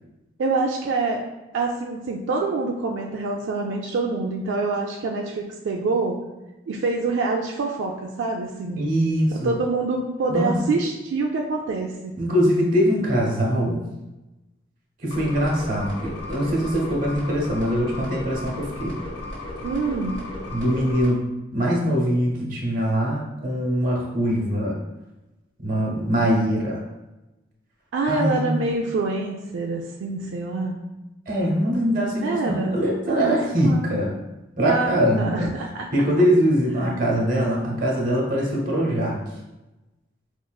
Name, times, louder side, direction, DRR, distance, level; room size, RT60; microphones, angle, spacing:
voice 1, 0.4-1.2 1.5-6.2 6.7-8.8 9.3-12.1 19.6-20.2 27.9-30.8 32.2-32.8 33.1-34.0 34.6-35.9 36.7-36.9, right 3 dB, 80° right, 0 dB, 0.3 m, -26 dB
voice 2, 8.8-9.5 10.3-10.6 12.2-13.8 15.0-19.0 20.5-21.3 21.5-24.8 25.6-26.8 28.1-28.6 31.3-34.1 34.6-35.5 35.9-39.2, equal, 45° right, -2 dB, 0.8 m, -22 dB
sound 1, 15.1-21.1, left 2 dB, 70° left, 0.8 m, -35 dB
4.7 x 2.4 x 2.2 m, 1.0 s
head